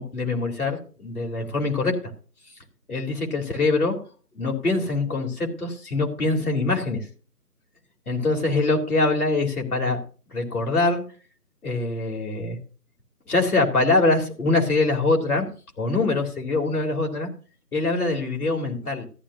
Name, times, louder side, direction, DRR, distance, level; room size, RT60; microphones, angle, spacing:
voice 1, 0.0-2.0 2.9-4.0 4.4-7.1 8.1-10.0 10.3-11.0 11.6-12.6 13.3-15.5 15.8-17.3 17.7-19.1, left 3 dB, 60° left, 1 dB, 3.6 m, -23 dB
14.0 x 12.5 x 2.7 m, 0.37 s
figure-of-eight pair, 170°, 48 cm